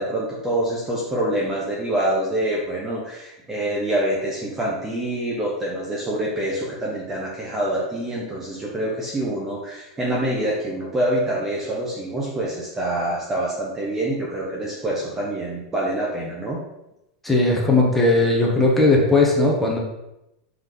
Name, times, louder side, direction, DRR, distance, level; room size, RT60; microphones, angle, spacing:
voice 1, 0.0-16.6, right 1 dB, 15° right, -3 dB, 1.0 m, -26 dB
voice 2, 17.2-19.8, left 2 dB, 5° left, -3 dB, 1.4 m, -18 dB
5.8 x 5.3 x 4.0 m, 0.90 s
supercardioid pair, 150°, 3 cm